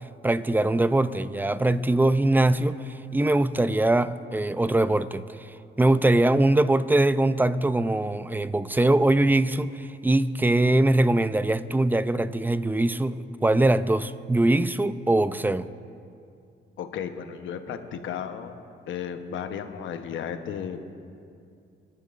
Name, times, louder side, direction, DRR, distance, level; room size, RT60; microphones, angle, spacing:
voice 1, 0.2-15.7, right 2 dB, 10° right, 14 dB, 0.4 m, -22 dB
voice 2, 16.8-18.5 18.9-20.8, left 8 dB, 75° left, 7 dB, 1.0 m, -34 dB
27.0 x 11.0 x 2.5 m, 2.4 s
cardioid pair, 90°, 20 cm